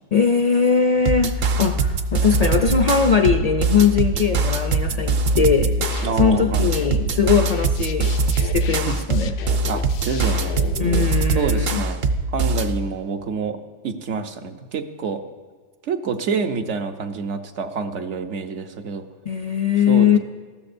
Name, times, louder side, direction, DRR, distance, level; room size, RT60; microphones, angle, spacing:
voice 1, 0.1-8.1 8.4-9.3 10.8-11.8 19.3-20.2, left 6 dB, 55° left, 6 dB, 0.4 m, -20 dB
sound 1, 1.1-12.8, right 3 dB, 60° right, 0.8 m, -22 dB
sound 2, 5.6-11.1, left 9 dB, 90° left, 0.9 m, -35 dB
voice 2, 6.0-6.7 8.8-9.0 9.7-10.6 11.4-12.0 12.3-13.6 13.8-15.2 15.8-19.0 19.9-20.2, right 5 dB, 80° right, 5 dB, 1.2 m, -27 dB
19.0 x 14.0 x 2.6 m, 1.5 s
omnidirectional pair, 1.2 m